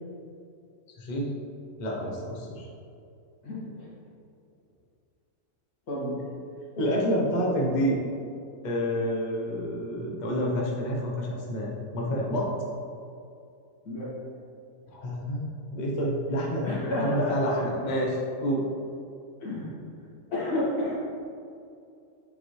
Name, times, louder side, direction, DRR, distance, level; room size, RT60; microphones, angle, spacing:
voice 1, 1.0-1.3 1.8-2.7 6.8-8.0 8.6-12.5 14.9-18.6, equal, 35° left, -2 dB, 1.0 m, -28 dB
voice 2, 3.4-3.9 5.9-6.2 13.8-14.1 16.6-17.5 19.4-19.8 20.3-21.0, left 1 dB, 85° left, -7 dB, 2.5 m, -30 dB
8.0 x 5.6 x 3.2 m, 2.5 s
omnidirectional pair, 1.5 m